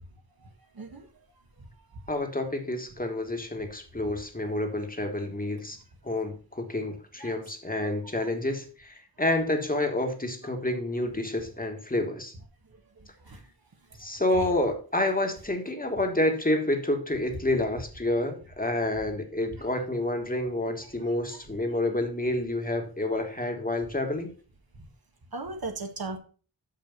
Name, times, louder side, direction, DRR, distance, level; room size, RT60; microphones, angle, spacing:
voice 1, 2.1-5.8 6.0-12.3 14.0-24.3, left 1 dB, 25° left, 4 dB, 1.5 m, -29 dB
voice 2, 25.3-26.2, right 3 dB, 70° right, 4 dB, 1.6 m, -36 dB
6.5 x 5.9 x 5.3 m, 0.38 s
wide cardioid pair, 75°, 38 cm